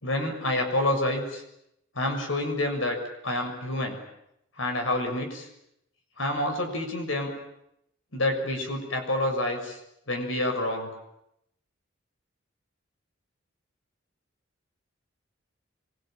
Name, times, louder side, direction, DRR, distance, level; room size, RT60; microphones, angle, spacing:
voice 1, 0.0-1.4 1.9-3.0 3.2-4.0 4.6-5.5 6.2-7.3 8.1-9.8 10.1-10.9, left 1 dB, 75° left, 4 dB, 6.7 m, -28 dB
26.0 x 24.0 x 9.2 m, 0.82 s
head